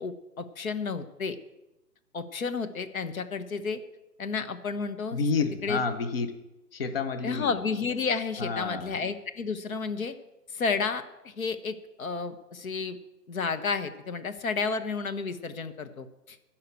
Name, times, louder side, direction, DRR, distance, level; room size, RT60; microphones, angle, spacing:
voice 1, 0.0-1.4 2.1-3.8 4.2-5.2 5.6-5.8 7.2-10.1 10.5-13.0 13.3-16.4, left 5 dB, 55° left, 10 dB, 1.2 m, -31 dB
voice 2, 5.1-6.3 6.7-7.6 8.4-9.0, left 4 dB, 35° left, 9 dB, 0.9 m, -29 dB
14.5 x 5.8 x 8.1 m, 1.0 s
hypercardioid pair, 160°, 49 cm